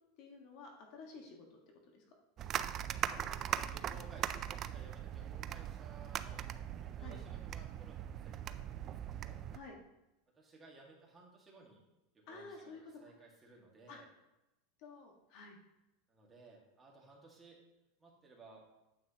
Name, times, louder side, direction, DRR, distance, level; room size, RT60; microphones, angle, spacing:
voice 1, 0.2-1.6 1.9-2.0 7.0-7.2 9.5-9.8 12.3-12.8 13.9-14.0 14.8-15.6, left 4 dB, 55° left, 1 dB, 1.6 m, -52 dB
sound 1, 2.4-9.6, right 10 dB, 35° right, 0.3 m, -40 dB
voice 2, 3.0-6.4 6.8-9.4 10.4-11.8 12.3-14.1 16.1-17.6 18.0-18.6, right 3 dB, 15° right, -2 dB, 1.8 m, -59 dB
9.3 x 7.5 x 2.9 m, 0.93 s
supercardioid pair, 145°, 0 cm